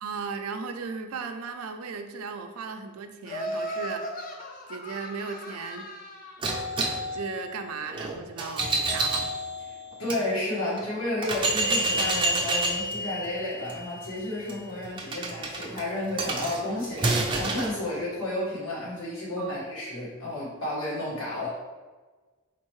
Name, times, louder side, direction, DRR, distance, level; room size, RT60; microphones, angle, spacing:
voice 1, 0.0-4.3 4.7-5.9 7.1-9.3 19.4-19.6, right 5 dB, 80° right, 6 dB, 0.5 m, -36 dB
Laughter, 3.3-6.5, equal, 40° left, 0.5 m, -36 dB
sound 1, 6.4-10.2 10.8-10.9 11.2-17.7, right 2 dB, 20° right, 0.5 m, -29 dB
voice 2, 10.0-17.0 17.3-21.5, left 1 dB, 85° left, -8 dB, 1.5 m, -31 dB
4.4 x 3.9 x 3.1 m, 1.3 s
head